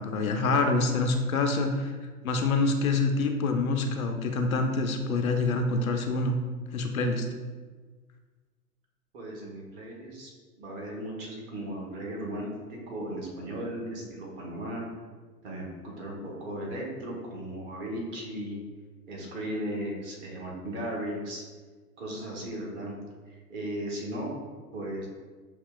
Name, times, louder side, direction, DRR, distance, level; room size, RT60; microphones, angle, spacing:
voice 1, 0.0-1.9 2.2-6.4 6.7-7.3, left 3 dB, 65° left, 4 dB, 0.6 m, -26 dB
voice 2, 9.1-10.3 10.6-14.8 15.4-18.6 19.1-21.4 22.0-22.9 23.5-24.3 24.7-25.1, right 1 dB, 25° right, -3 dB, 1.0 m, -36 dB
6.4 x 2.9 x 2.2 m, 1.4 s
figure-of-eight pair, 105°, 46 cm